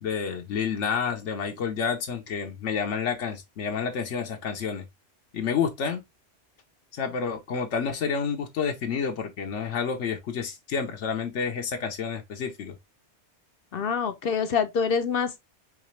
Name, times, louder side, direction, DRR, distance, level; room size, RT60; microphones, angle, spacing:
voice 1, 0.0-4.8 5.3-6.0 6.9-12.8, left 6 dB, 85° left, 1.1 m, -29 dB
voice 2, 13.7-15.4, left 6 dB, 60° left, 0.7 m, -26 dB
4.9 x 3.2 x 3.1 m
omnidirectional pair, 1.2 m